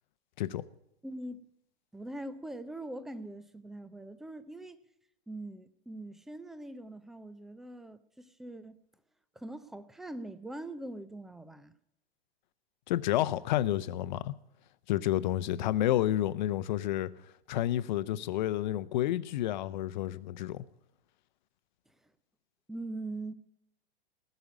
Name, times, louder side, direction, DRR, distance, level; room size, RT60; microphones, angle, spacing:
voice 1, 1.0-1.4 1.9-4.8 5.3-8.8 9.3-11.7 21.9-22.0 22.7-23.3, right 1 dB, ahead, 0.5 m, -42 dB
voice 2, 12.9-14.3 14.9-17.1 17.5-20.6, left 13 dB, 45° left, 0.8 m, -30 dB
19.0 x 6.9 x 8.2 m
figure-of-eight pair, 105°, 32 cm